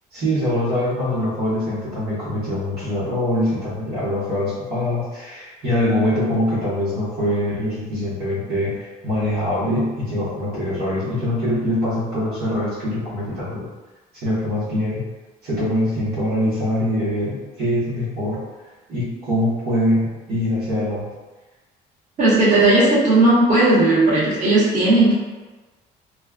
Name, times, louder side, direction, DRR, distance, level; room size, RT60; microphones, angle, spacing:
voice 1, 0.1-13.7 14.1-15.0 15.4-18.4 18.9-21.1, left 1 dB, 70° right, -10 dB, 1.3 m, -23 dB
voice 2, 22.2-25.1, right 2 dB, 45° right, -10 dB, 1.4 m, -15 dB
3.1 x 2.3 x 2.4 m, 1.2 s
cardioid pair, 110°, 17 cm